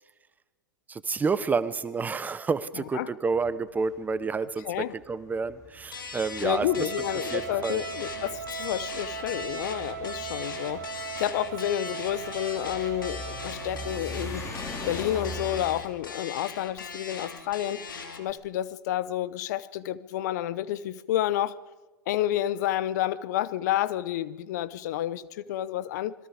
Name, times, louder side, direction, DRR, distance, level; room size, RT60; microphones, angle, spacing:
voice 1, 0.9-4.7 5.1-6.9 7.3-7.8, right 4 dB, 15° right, 0.9 m, -29 dB
sound 1, 3.3-15.8, equal, 25° left, 4.3 m, -42 dB
sound 2, 5.9-18.3, left 5 dB, 75° left, 2.8 m, -40 dB
voice 2, 6.4-14.5 14.9-17.9 18.2-21.6 22.1-26.1, left 13 dB, 55° left, 0.8 m, -30 dB
Wind instrument woodwind instrument, 6.4-14.1, right 8 dB, 75° right, 2.7 m, -39 dB
26.5 x 21.5 x 5.1 m
figure-of-eight pair, 95°, 11 cm